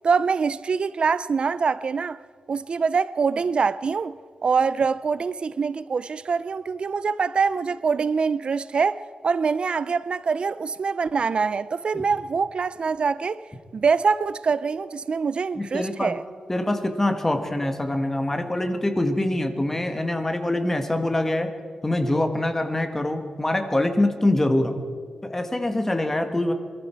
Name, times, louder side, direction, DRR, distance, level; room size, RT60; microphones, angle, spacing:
voice 1, 0.0-2.2 2.5-4.2 4.4-13.4 13.7-16.2, right 5 dB, 50° right, 0.3 m, -24 dB
voice 2, 15.6-16.2 16.5-21.5 21.8-24.8 25.2-26.5, left 1 dB, 15° left, 1.5 m, -24 dB
23.0 x 14.0 x 4.5 m
wide cardioid pair, 120°, 2 cm